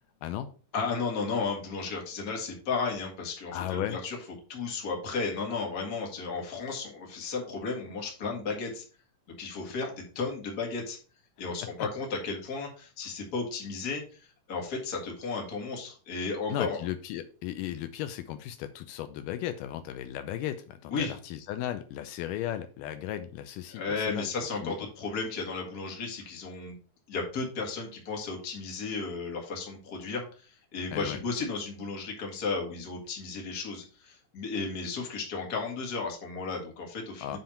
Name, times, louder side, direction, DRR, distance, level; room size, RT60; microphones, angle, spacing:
voice 1, 0.7-4.2 4.5-8.8 9.4-11.0 11.4-16.8 20.9-21.1 23.7-26.7 27.1-37.4, left 4 dB, 35° left, 1.8 m, -34 dB
voice 2, 3.5-4.0 11.8-11.9 16.5-24.3 24.6-24.7 30.9-31.2 37.2-37.4, left 12 dB, 80° left, 2.1 m, -35 dB
7.7 x 3.6 x 5.7 m
omnidirectional pair, 3.8 m